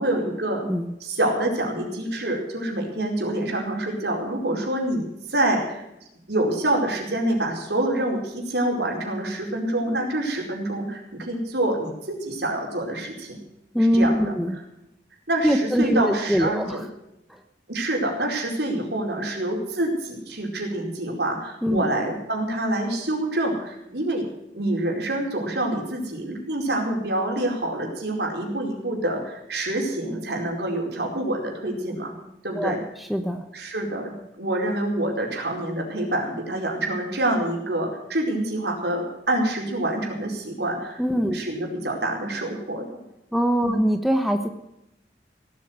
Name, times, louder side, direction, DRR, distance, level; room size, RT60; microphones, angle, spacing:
voice 1, 0.0-0.7 1.0-5.8 6.3-13.4 13.9-14.3 15.3-16.8 17.7-24.2 24.5-32.1 32.4-32.8 33.5-43.0 43.6-43.8, right 1 dB, 75° right, 0 dB, 4.8 m, -26 dB
voice 2, 13.7-14.6 15.4-16.8 17.3-17.4 21.6-21.8 32.6-32.8 33.1-33.4 41.0-41.4 43.3-44.5, equal, ahead, 5 dB, 1.0 m, -22 dB
17.5 x 8.5 x 8.1 m, 0.86 s
head